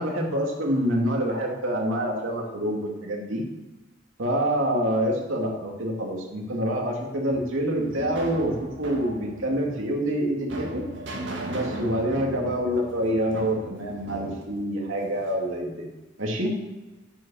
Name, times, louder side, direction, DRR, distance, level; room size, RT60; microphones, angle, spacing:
voice 1, 0.0-3.4 4.2-10.8 11.5-15.8 16.2-16.5, equal, 90° right, 0 dB, 2.5 m, -26 dB
Tampon-Ouverture, 7.3-15.4, right 1 dB, 65° right, 1.9 m, -38 dB
10.0 x 6.7 x 6.9 m, 1.1 s
head